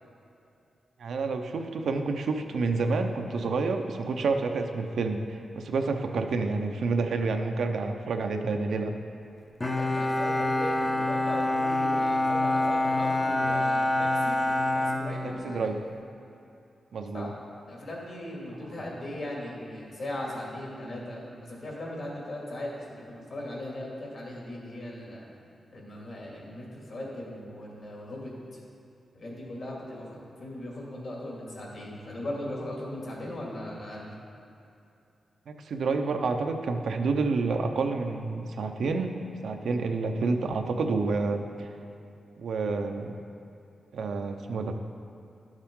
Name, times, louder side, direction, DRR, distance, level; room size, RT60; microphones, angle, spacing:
voice 1, 1.0-8.9 15.4-15.8 16.9-17.3 35.5-39.1 39.4-41.7 42.4-43.1 43.9-44.7, right 4 dB, 80° right, 5 dB, 0.7 m, -29 dB
Bowed string instrument, 9.6-15.8, left 1 dB, 20° left, 0.6 m, -26 dB
voice 2, 9.8-15.7 17.1-17.3 17.7-25.3 25.7-28.3 29.1-34.1, left 1 dB, 55° left, -3 dB, 2.3 m, -38 dB
12.5 x 7.2 x 3.7 m, 2.6 s
wide cardioid pair, 125°, 0 cm